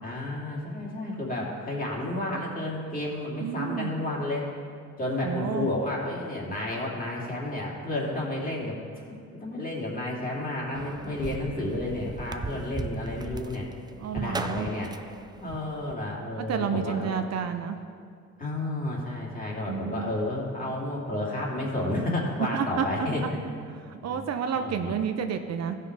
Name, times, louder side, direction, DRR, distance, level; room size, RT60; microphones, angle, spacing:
voice 1, 0.0-4.5 5.0-13.7 14.1-14.9 15.4-17.1 18.4-23.4 24.0-24.2 24.5-24.9, left 1 dB, 30° left, -3 dB, 2.7 m, -31 dB
voice 2, 3.4-3.9 5.2-5.7 14.0-14.7 16.4-17.8 19.7-20.1 22.5-22.9 23.9-25.8, right 7 dB, 60° right, 7 dB, 0.7 m, -30 dB
sound 1, 10.7-15.9, right 3 dB, 15° right, 0.3 m, -37 dB
14.5 x 5.7 x 4.7 m, 2.2 s
cardioid pair, 90°, 30 cm